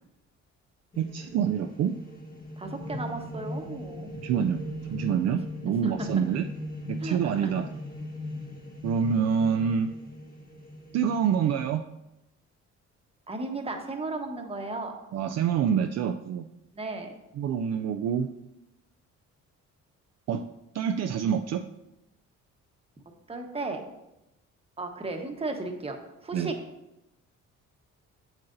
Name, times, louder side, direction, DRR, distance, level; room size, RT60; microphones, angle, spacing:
sound 1, 0.9-11.7, left 1 dB, 30° left, 1.4 m, -39 dB
voice 1, 1.0-2.0 4.2-4.6 4.9-6.4 6.9-7.7 8.8-9.9 10.9-11.8 15.1-16.5 17.4-18.3 20.3-20.4 20.7-21.6 26.3-26.5, right 7 dB, 60° right, 6 dB, 0.4 m, -26 dB
voice 2, 2.6-4.1 5.8-6.1 7.0-7.5 13.3-14.9 16.7-17.1 23.3-23.8 24.8-26.0 26.2-26.5, right 3 dB, 20° right, 3 dB, 1.1 m, -34 dB
7.8 x 7.2 x 2.6 m, 0.90 s
cardioid pair, 90°, 30 cm